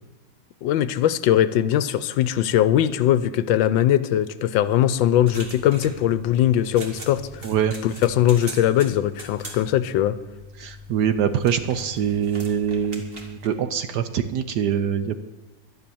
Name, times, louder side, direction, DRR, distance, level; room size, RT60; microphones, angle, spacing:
voice 1, 0.6-7.5 7.8-10.2, left 11 dB, 75° left, 15 dB, 1.3 m, -20 dB
sound 1, 5.0-13.5, equal, 30° right, 1.8 m, -40 dB
voice 2, 7.4-7.7 10.6-15.1, right 8 dB, 65° right, 10 dB, 1.1 m, -24 dB
12.0 x 10.5 x 6.9 m, 0.98 s
omnidirectional pair, 2.2 m